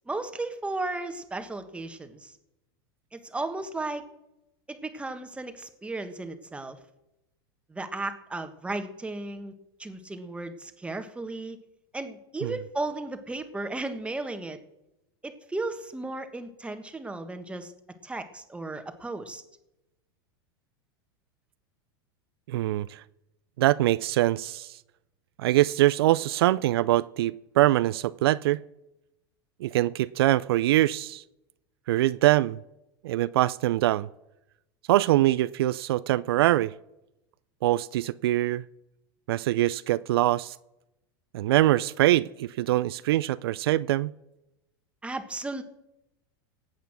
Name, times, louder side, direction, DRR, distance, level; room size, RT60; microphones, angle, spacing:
voice 1, 0.1-2.3 3.1-4.0 4.7-6.8 7.7-9.5 9.8-11.6 11.9-14.6 15.2-17.7 18.0-19.4 45.0-45.6, right 2 dB, 10° right, 8 dB, 1.5 m, -35 dB
voice 2, 22.5-23.0 23.6-24.8 25.4-28.6 29.6-31.2 31.9-32.6 33.0-34.1 34.9-36.7 37.6-38.6 39.3-40.6 41.3-44.1, right 15 dB, 80° right, 17 dB, 0.4 m, -23 dB
18.0 x 8.1 x 6.2 m, 0.92 s
hypercardioid pair, 115°, 13 cm